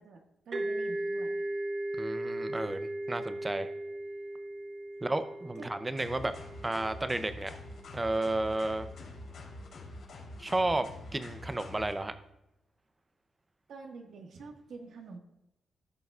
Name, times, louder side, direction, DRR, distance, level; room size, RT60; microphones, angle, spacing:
voice 1, 0.0-1.4 5.5-5.7 13.7-15.2, right 4 dB, 75° right, 2 dB, 1.5 m, -47 dB
sound 1, 0.5-8.0, right 1 dB, 40° right, 0.9 m, -37 dB
voice 2, 2.0-3.7 5.0-6.3 6.6-7.5 7.9-8.9 10.4-10.9 11.1-12.1, right 2 dB, 15° right, 10 dB, 0.5 m, -32 dB
sound 2, 6.0-11.9, left 2 dB, 75° left, 3.3 m, -46 dB
15.5 x 6.8 x 2.4 m, 0.88 s
wide cardioid pair, 160°, 0 cm